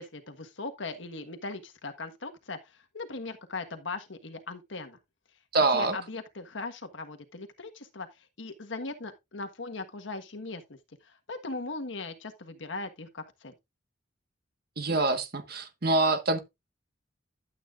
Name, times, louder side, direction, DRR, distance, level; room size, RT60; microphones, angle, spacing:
voice 1, 0.0-5.0 5.7-13.5, left 3 dB, 80° left, 1.5 m, -39 dB
voice 2, 5.5-6.0 14.8-16.4, right 2 dB, 55° right, 1.5 m, -25 dB
12.0 x 8.4 x 2.5 m
head